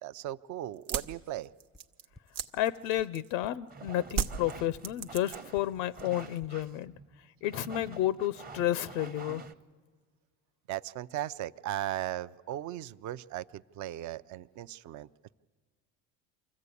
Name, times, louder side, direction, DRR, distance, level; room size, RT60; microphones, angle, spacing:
voice 1, 0.0-1.5 10.7-15.1, right 13 dB, 50° right, 0.5 m, -37 dB
sound 1, 0.7-3.5 4.1-5.7 5.9-6.5, right 7 dB, 85° right, 0.9 m, -36 dB
sound 2, 1.7-1.8 2.1-2.2 2.5-2.6 3.0-3.1 3.4-3.5 3.9-4.0 4.3-4.4 4.7-4.8 5.1-5.2 5.5-5.6 6.0-6.1 6.4-6.5, left 2 dB, ahead, 0.5 m, -52 dB
voice 2, 2.5-6.9 7.4-9.4, left 13 dB, 85° left, 0.6 m, -31 dB
sound 3, 3.7-9.5, right 4 dB, 25° right, 0.8 m, -48 dB
24.5 x 14.5 x 8.3 m
supercardioid pair, 95°, 37 cm